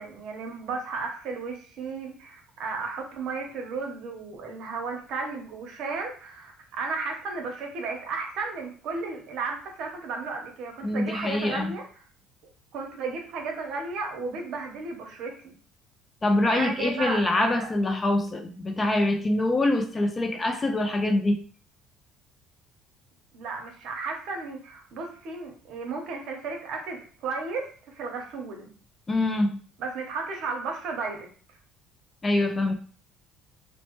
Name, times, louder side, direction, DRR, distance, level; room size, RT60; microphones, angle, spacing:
voice 1, 0.0-11.8 12.7-15.5 16.4-17.7 23.3-28.7 29.8-31.3, right 4 dB, 65° right, 2 dB, 0.8 m, -34 dB
voice 2, 10.8-11.7 16.2-21.4 29.1-29.6 32.2-32.7, left 2 dB, 20° left, 6 dB, 0.3 m, -24 dB
3.0 x 2.1 x 3.0 m, 0.42 s
cardioid pair, 140°, 0 cm